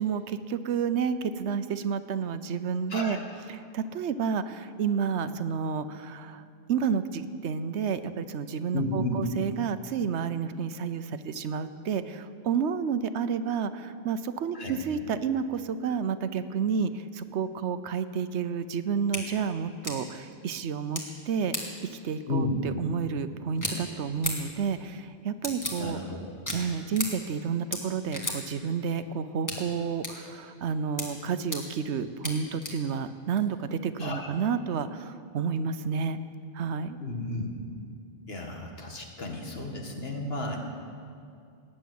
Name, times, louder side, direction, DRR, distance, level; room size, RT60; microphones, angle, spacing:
voice 1, 0.0-3.2 3.5-6.4 6.7-26.0 26.5-36.2 36.5-37.0, right 6 dB, 85° right, 12 dB, 1.0 m, -30 dB
voice 2, 2.9-3.2 8.7-9.2 14.5-14.8 22.3-22.6 25.8-26.2 34.0-34.3 37.0-37.5 38.3-40.6, left 2 dB, 65° left, 1 dB, 2.1 m, -32 dB
sound 1, 19.1-19.2 19.8-19.9 20.9-21.0 21.5-21.6 23.5-23.7 24.2-24.3 25.4-25.7 26.5-26.6 27.0-27.1 27.7-27.8 28.1-28.4 29.5-29.6 30.0-30.1 31.0-31.1 31.5-31.6 32.2-32.3 32.6-32.7 33.4-33.5, left 1 dB, 15° left, 2.1 m, -32 dB
18.5 x 7.8 x 9.3 m, 2.3 s
omnidirectional pair, 1.1 m